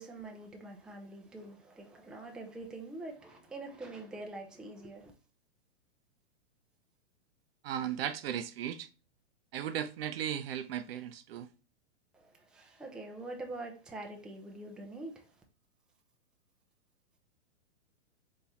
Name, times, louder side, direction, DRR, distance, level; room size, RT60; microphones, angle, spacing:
voice 1, 0.0-5.1 12.1-15.3, right 2 dB, ahead, 0.5 m, -45 dB
voice 2, 7.6-8.9 9.5-11.5, right 10 dB, 60° right, 0.6 m, -36 dB
4.1 x 3.7 x 2.8 m
hypercardioid pair, 120°, 35 cm